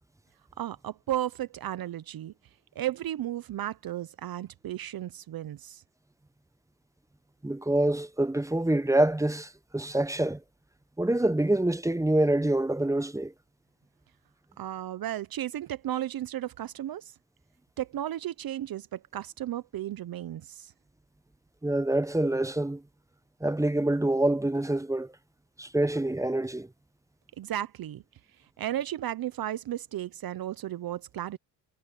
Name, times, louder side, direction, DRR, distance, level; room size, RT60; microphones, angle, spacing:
voice 1, 0.6-2.3 2.7-5.8 14.6-17.1 17.8-20.7 27.4-28.0 28.6-31.4, right 12 dB, 50° right, 0.8 m, -34 dB
voice 2, 7.4-10.4 11.0-13.3 21.6-22.8 23.4-25.1 25.6-26.7, right 1 dB, 5° right, 0.8 m, -26 dB
cardioid pair, 85°, 44 cm